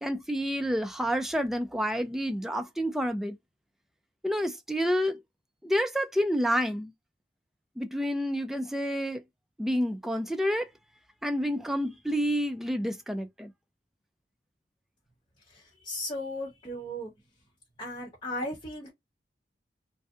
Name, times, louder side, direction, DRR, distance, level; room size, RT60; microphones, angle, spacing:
voice 1, 0.0-3.4 4.2-5.2 5.6-6.9 7.8-9.2 9.6-10.7 11.2-13.5, equal, ahead, 0.3 m, -29 dB
voice 2, 15.5-17.1 17.8-18.9, left 1 dB, 25° left, 1.0 m, -36 dB
2.6 x 2.2 x 2.4 m
head